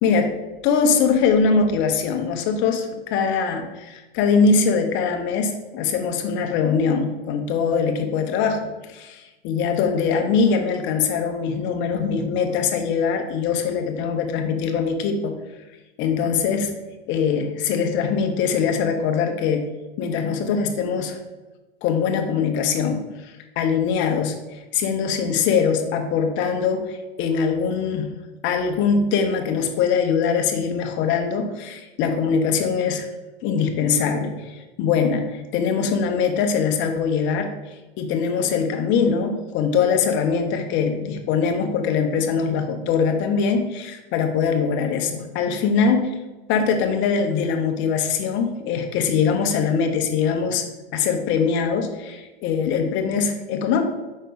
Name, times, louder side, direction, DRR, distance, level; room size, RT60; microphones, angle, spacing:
voice 1, 0.0-0.3 0.6-15.3 16.0-16.7 17.1-19.7 20.0-21.2 21.8-28.1 28.4-33.1 33.4-37.5 38.0-46.1 46.5-50.6 50.9-53.8, left 6 dB, 40° left, 5 dB, 1.0 m, -22 dB
5.2 x 4.3 x 5.2 m, 1.1 s
hypercardioid pair, 120°, 31 cm